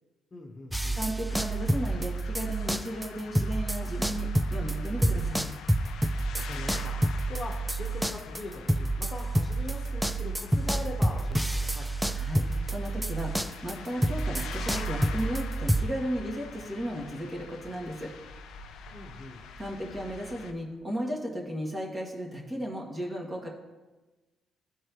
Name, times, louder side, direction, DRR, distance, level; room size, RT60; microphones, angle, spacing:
voice 1, 0.3-1.0 6.5-7.0 7.3-11.9 18.9-19.4, left 2 dB, 30° left, 0 dB, 1.1 m, -41 dB
sound 1, 0.7-3.1 3.4-15.8, right 1 dB, 5° right, 0.4 m, -29 dB
voice 2, 0.9-5.5 12.1-18.1 19.6-23.5, equal, 25° right, -1 dB, 1.8 m, -35 dB
sound 2, 1.3-20.5, left 5 dB, 85° left, 0.6 m, -45 dB
13.5 x 4.6 x 3.1 m, 1.2 s
cardioid pair, 90°, 0 cm